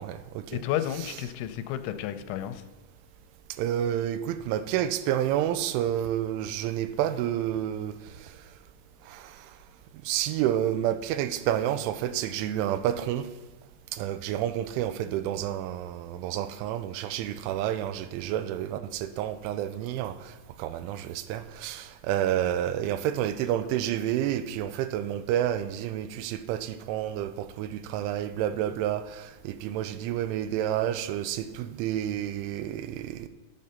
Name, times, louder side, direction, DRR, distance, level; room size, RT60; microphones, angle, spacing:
voice 1, 0.0-0.6 3.6-8.4 9.1-9.5 10.1-13.3 13.9-33.3, right 11 dB, 85° right, 12 dB, 3.1 m, -29 dB
voice 2, 0.5-2.6, left 11 dB, 85° left, 9 dB, 3.0 m, -32 dB
12.0 x 7.5 x 5.5 m, 1.2 s
omnidirectional pair, 5.4 m